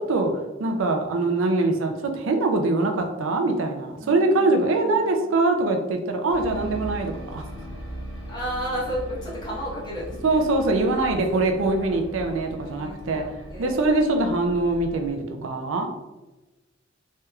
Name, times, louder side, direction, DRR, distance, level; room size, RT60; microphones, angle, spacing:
voice 1, 0.6-7.4 10.2-13.2 13.6-15.9, right 2 dB, 80° right, 4 dB, 0.4 m, -23 dB
voice 2, 4.0-5.3 8.3-10.4 10.8-12.0 12.4-13.7, equal, 20° left, -6 dB, 0.9 m, -34 dB
sound 1, 6.3-15.1, equal, 25° right, 1.4 m, -39 dB
3.3 x 2.9 x 2.3 m, 1.1 s
head